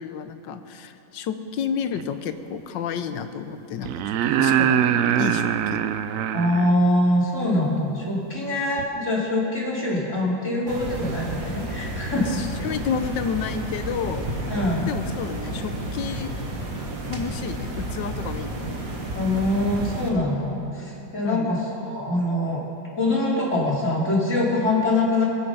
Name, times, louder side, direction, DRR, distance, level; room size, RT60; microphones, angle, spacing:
voice 1, 0.0-3.9 4.2-5.8 12.1-14.3 14.9-16.3 17.1-18.7 21.2-21.5, left 7 dB, 85° left, 9 dB, 1.5 m, -30 dB
sound 1, 2.0-2.1 3.8-6.7 8.8-8.9, right 10 dB, 75° right, 0.7 m, -23 dB
voice 2, 6.3-12.2 14.5-14.9 19.1-21.6 21.8-22.6 22.9-25.2, left 1 dB, 40° left, -5 dB, 3.1 m, -23 dB
sound 2, 10.7-20.1, right 1 dB, 50° right, 1.9 m, -31 dB
23.5 x 8.8 x 5.5 m, 2.9 s
omnidirectional pair, 1.9 m